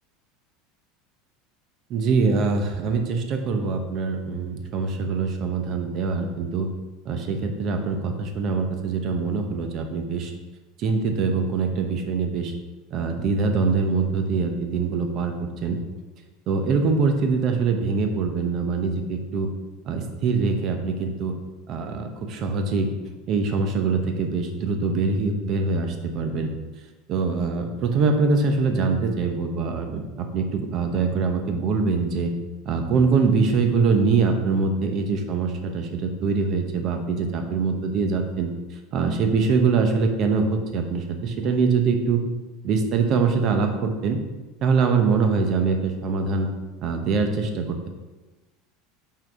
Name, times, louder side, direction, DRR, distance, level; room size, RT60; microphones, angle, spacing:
voice 1, 1.9-6.7 7.0-10.3 10.8-12.5 12.9-15.3 15.6-15.8 16.5-19.5 19.9-21.3 21.7-22.9 23.3-26.5 27.1-32.3 32.7-38.5 38.9-42.2 42.6-44.2 44.6-46.5 46.8-47.9, right 4 dB, 40° right, 5 dB, 0.9 m, -23 dB
5.8 x 4.7 x 4.9 m, 1.2 s
supercardioid pair, 150°, 0 cm